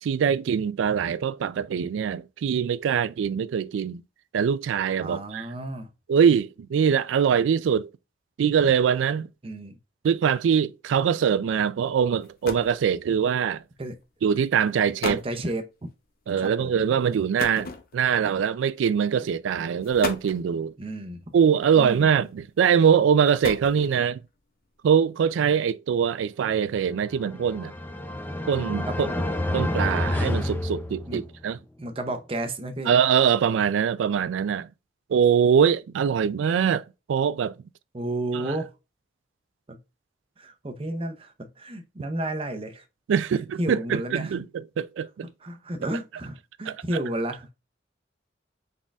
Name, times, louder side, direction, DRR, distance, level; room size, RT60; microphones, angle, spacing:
voice 1, 0.0-4.0 4.3-5.5 6.1-7.9 8.4-9.3 10.0-13.6 14.2-15.2 16.3-20.7 21.3-24.2 24.8-27.7 28.5-29.1 29.5-31.6 32.9-34.7 35.1-37.6 38.3-38.5 43.1-45.3 46.7-46.8, right 7 dB, 90° right, 0.3 m, -23 dB
voice 2, 5.0-5.9 9.4-9.8 13.8-14.0 15.0-15.6 16.4-16.7 20.8-21.2 21.7-22.1 28.9-29.2 31.1-31.2 31.8-32.9 37.9-38.7 39.7-39.8 40.4-42.8 43.3-44.4 45.4-47.5, right 1 dB, 30° right, 0.6 m, -32 dB
sound 1, 11.9-12.0 12.2-12.8 13.8-14.0 14.7-14.8 15.0-15.4 17.4-18.2 19.2-19.3 19.8-20.5 21.8-22.2 23.1-24.1, left 4 dB, 50° left, 0.6 m, -35 dB
sound 2, 27.0-31.5, left 1 dB, 10° left, 0.4 m, -29 dB
4.0 x 3.7 x 2.3 m
head